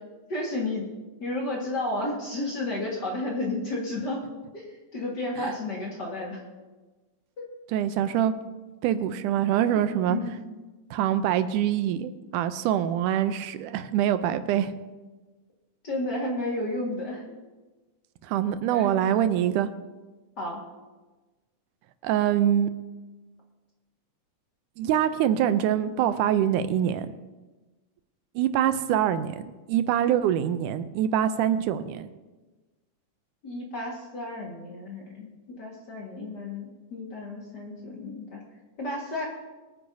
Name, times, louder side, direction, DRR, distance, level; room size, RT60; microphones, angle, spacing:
voice 1, 0.3-0.9 1.2-4.3 4.5-6.4 7.4-7.5 9.7-9.8 10.1-10.3 15.8-17.2 18.7-19.2 20.4-20.6 33.4-38.4 38.8-39.3, left 2 dB, 40° left, -2 dB, 1.9 m, -32 dB
voice 2, 7.7-8.3 8.8-10.2 10.9-14.7 18.2-19.7 22.0-22.7 24.8-27.1 28.4-29.4 29.7-32.1, right 10 dB, 85° right, 11 dB, 2.1 m, -24 dB
23.0 x 9.4 x 2.7 m, 1.2 s
omnidirectional pair, 3.6 m